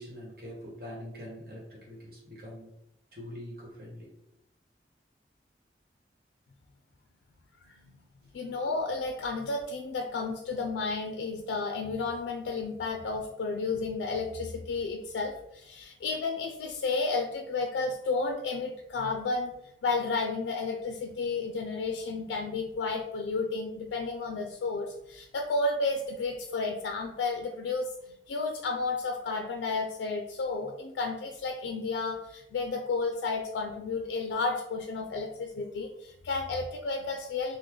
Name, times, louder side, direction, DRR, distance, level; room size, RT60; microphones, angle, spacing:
voice 1, 0.0-2.7 3.1-4.1 8.5-8.6, equal, 55° right, -3 dB, 1.2 m, -44 dB
voice 2, 8.3-19.5 19.8-27.9 28.3-37.6, left 3 dB, 90° left, 3 dB, 0.3 m, -32 dB
3.1 x 2.1 x 3.6 m, 0.84 s
head